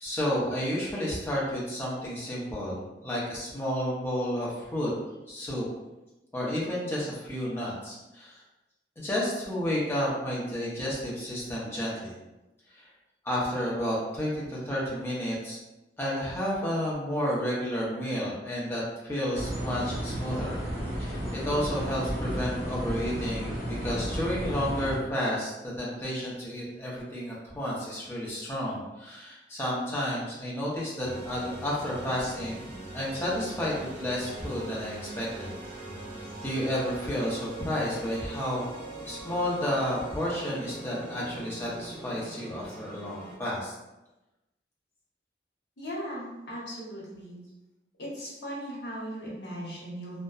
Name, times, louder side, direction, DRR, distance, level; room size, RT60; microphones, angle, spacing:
voice 1, 0.0-4.9 5.3-5.6 6.3-8.3 9.0-12.2 12.7-12.9 13.2-15.6 16.0-20.6 21.0-32.7 32.9-35.5 36.4-38.7 39.0-43.7, equal, 15° left, -6 dB, 0.6 m, -31 dB
sound 1, 19.3-25.0, equal, 55° right, 0.7 m, -33 dB
sound 2, 31.0-43.3, right 2 dB, 5° right, 1.0 m, -42 dB
voice 2, 45.8-47.4 48.0-50.2, equal, 85° left, -4 dB, 0.9 m, -38 dB
2.7 x 2.1 x 2.3 m, 1.0 s
head